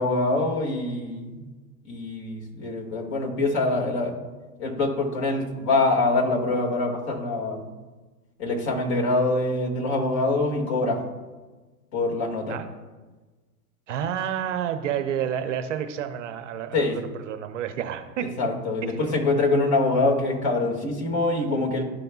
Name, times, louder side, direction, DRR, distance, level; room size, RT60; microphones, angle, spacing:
voice 1, 0.0-1.4 1.8-4.2 4.6-7.6 8.4-11.0 11.9-12.6 16.7-17.0 18.4-21.8, left 2 dB, 45° left, 0 dB, 2.0 m, -24 dB
voice 2, 13.9-18.3, right 9 dB, 50° right, 8 dB, 0.6 m, -29 dB
12.5 x 5.2 x 2.3 m, 1.2 s
hypercardioid pair, 150°, 48 cm